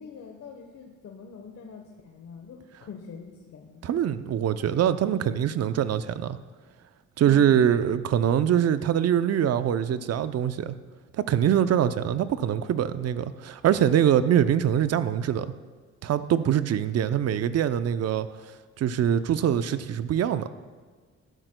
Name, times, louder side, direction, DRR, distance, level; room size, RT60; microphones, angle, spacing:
voice 1, 0.0-3.9 7.2-7.8, left 6 dB, 60° left, 2 dB, 1.1 m, -44 dB
voice 2, 3.8-6.4 7.2-10.7 11.2-15.5 16.0-18.3 18.8-20.5, right 9 dB, 55° right, 13 dB, 0.6 m, -23 dB
13.5 x 12.0 x 2.2 m, 1.5 s
cardioid pair, 90°, 30 cm